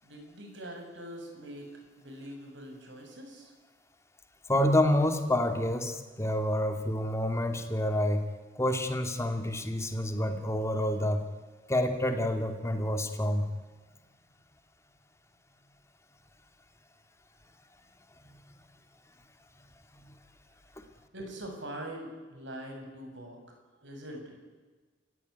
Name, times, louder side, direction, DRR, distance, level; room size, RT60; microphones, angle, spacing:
voice 1, 0.0-3.5 21.1-23.6 23.8-24.4, right 1 dB, 65° right, 3 dB, 7.4 m, -43 dB
voice 2, 4.5-8.3 8.6-11.2 11.7-13.5, left 1 dB, 15° left, 6 dB, 2.5 m, -28 dB
28.5 x 16.0 x 9.7 m, 1.3 s
head